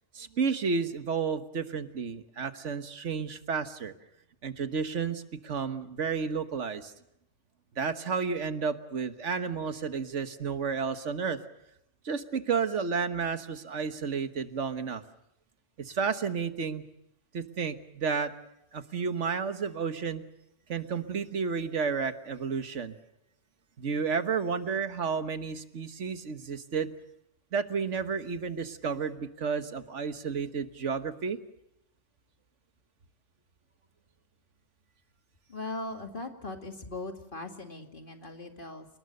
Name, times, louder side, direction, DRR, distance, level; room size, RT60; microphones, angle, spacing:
voice 1, 0.1-3.9 4.4-6.9 7.8-11.4 12.0-15.0 15.8-16.9 17.3-18.3 18.7-20.2 20.7-23.0 23.8-26.9 27.5-31.4, right 5 dB, 85° right, 9 dB, 1.6 m, -31 dB
voice 2, 35.5-38.9, left 2 dB, 45° left, 5 dB, 2.4 m, -39 dB
29.0 x 19.5 x 6.6 m, 0.81 s
omnidirectional pair, 1.2 m